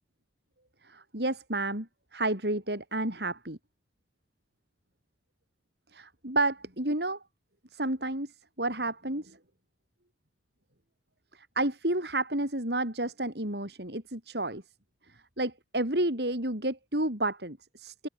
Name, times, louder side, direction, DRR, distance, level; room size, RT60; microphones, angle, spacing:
voice 1, 0.8-1.9 2.1-3.6 5.9-7.2 7.7-8.3 8.6-9.4 11.3-14.6 15.4-18.1, right 2 dB, 70° right, 7.8 m, -31 dB
head